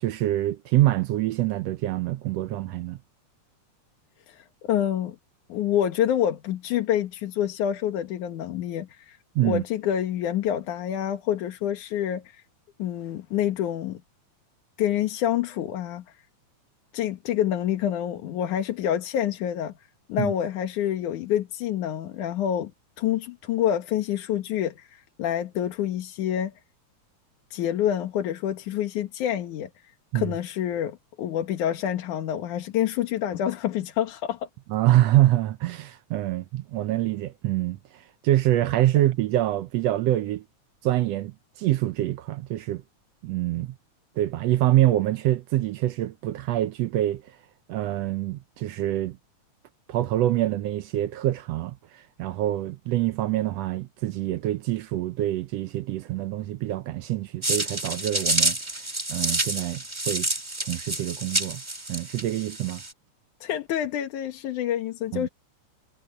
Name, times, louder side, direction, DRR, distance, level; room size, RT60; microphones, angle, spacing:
voice 1, 0.0-3.0 9.3-9.6 20.2-20.3 30.1-30.3 34.7-37.8 38.2-40.4 40.8-41.3 41.6-42.8 43.2-43.7 44.2-47.2 47.7-49.2 49.9-58.6 59.1-60.3 60.7-61.6 61.9-62.8 65.1-65.3, right 14 dB, 75° right, 1.6 m, -25 dB
voice 2, 4.3-5.2 5.5-12.4 12.8-14.0 14.8-16.0 16.9-19.7 20.1-22.7 23.0-26.5 27.5-29.7 30.1-34.5 63.4-65.3, left 10 dB, 80° left, 2.9 m, -27 dB
sound 1, 57.4-62.9, right 1 dB, 10° right, 1.9 m, -28 dB
omnidirectional pair, 3.5 m